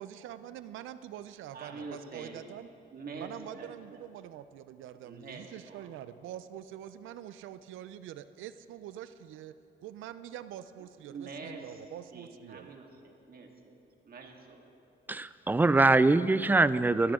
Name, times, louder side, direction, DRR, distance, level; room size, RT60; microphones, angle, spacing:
voice 1, 0.0-2.7 3.1-9.6 9.8-12.7, right 11 dB, 85° right, 13 dB, 0.5 m, -45 dB
voice 2, 1.5-2.5 2.9-4.0 5.0-5.9 11.1-11.8 12.1-13.8 14.0-14.7, right 4 dB, 50° right, 2 dB, 1.9 m, -45 dB
voice 3, 15.1-17.1, right 3 dB, 10° right, 16 dB, 0.4 m, -23 dB
20.5 x 13.0 x 3.7 m, 2.7 s
cardioid pair, 90°, 20 cm